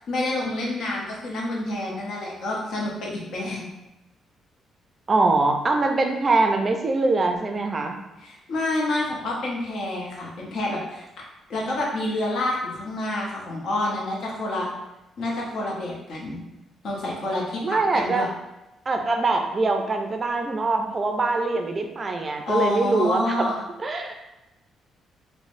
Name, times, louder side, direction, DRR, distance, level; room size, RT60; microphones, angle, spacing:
voice 1, 0.0-3.7 8.2-11.1 11.5-14.7 15.2-16.4 16.8-18.3 22.5-23.6, left 2 dB, 70° left, -3 dB, 0.8 m, -28 dB
voice 2, 5.1-8.0 17.6-18.2 18.9-23.5 23.8-24.3, right 3 dB, 35° right, 4 dB, 0.4 m, -23 dB
3.0 x 2.1 x 2.5 m, 0.96 s
cardioid pair, 90°, 0 cm